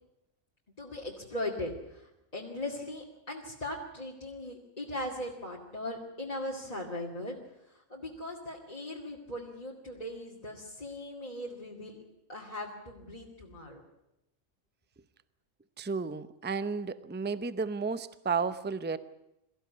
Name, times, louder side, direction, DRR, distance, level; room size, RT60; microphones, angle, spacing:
voice 1, 0.8-7.4 7.9-12.0 12.3-13.8, left 1 dB, 30° left, -4 dB, 2.6 m, -39 dB
voice 2, 15.8-19.0, right 5 dB, 10° right, 14 dB, 0.6 m, -32 dB
23.0 x 15.0 x 9.6 m, 0.87 s
omnidirectional pair, 1.4 m